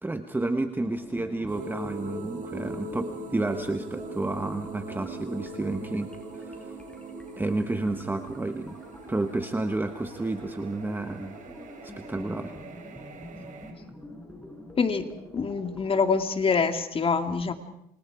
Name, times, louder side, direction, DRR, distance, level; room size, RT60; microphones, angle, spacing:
voice 1, 0.0-6.1 6.3-6.7 7.4-8.8 9.1-11.4 12.0-12.5, right 2 dB, 10° right, 7 dB, 1.3 m, -31 dB
sound 1, 0.7-16.1, left 1 dB, 5° left, 6.9 m, -47 dB
sound 2, 1.5-13.7, right 2 dB, 50° right, 4.9 m, -41 dB
voice 2, 14.8-15.1 15.3-17.5, left 5 dB, 35° left, 7 dB, 2.3 m, -25 dB
29.0 x 26.0 x 4.9 m, 0.73 s
cardioid pair, 110°, 17 cm